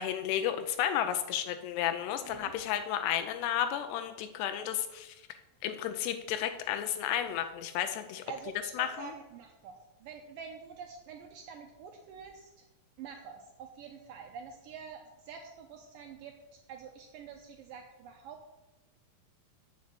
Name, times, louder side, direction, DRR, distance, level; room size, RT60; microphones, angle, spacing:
voice 1, 0.0-5.2 5.6-8.2 8.8-9.1, left 10 dB, 85° left, 8 dB, 2.8 m, -32 dB
voice 2, 8.3-12.7 13.0-16.3 16.7-18.5, right 6 dB, 75° right, 3 dB, 2.1 m, -47 dB
8.3 x 6.4 x 7.7 m, 1.0 s
omnidirectional pair, 4.7 m